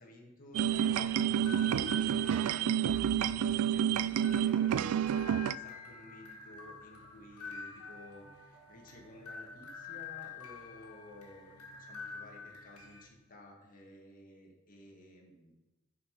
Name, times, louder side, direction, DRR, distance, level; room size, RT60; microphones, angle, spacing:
voice 1, 0.0-15.6, left 1 dB, 40° left, 0 dB, 1.6 m, -54 dB
sound 1, 0.5-5.5, right 9 dB, 75° right, 0.3 m, -29 dB
sound 2, 0.7-13.1, left 5 dB, 90° left, 1.6 m, -48 dB
10.5 x 4.8 x 5.8 m, 1.0 s
head